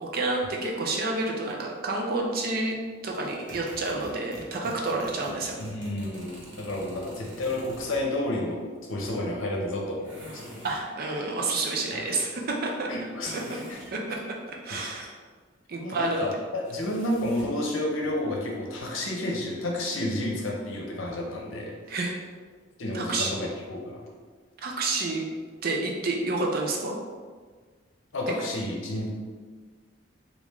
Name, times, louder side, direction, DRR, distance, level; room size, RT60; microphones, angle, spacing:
voice 1, 0.0-2.8 3.0-5.6 10.6-12.9 13.3-13.4 13.9-15.1 15.7-16.3 21.9-22.1 22.9-23.3 24.6-25.2 25.6-27.0, right 2 dB, 50° right, 0 dB, 0.5 m, -29 dB
sound 1, 3.1-8.2 10.0-10.9 13.2-13.9 16.6-17.6, equal, 65° right, 1.2 m, -45 dB
voice 2, 5.6-10.7 11.9-12.1 12.9-13.8 14.7-15.1 15.8-21.7 22.8-24.0 28.1-29.1, left 1 dB, 85° left, -1 dB, 0.7 m, -31 dB
3.1 x 2.4 x 3.5 m, 1.5 s
head